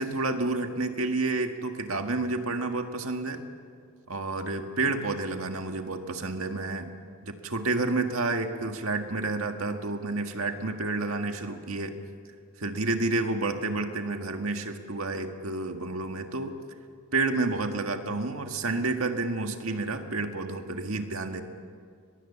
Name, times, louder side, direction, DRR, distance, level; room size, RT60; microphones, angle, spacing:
voice 1, 0.0-3.4 4.1-6.9 7.2-11.9 12.6-16.6 17.1-21.4, right 3 dB, 80° right, 5 dB, 1.8 m, -30 dB
23.0 x 21.5 x 7.0 m, 2.1 s
head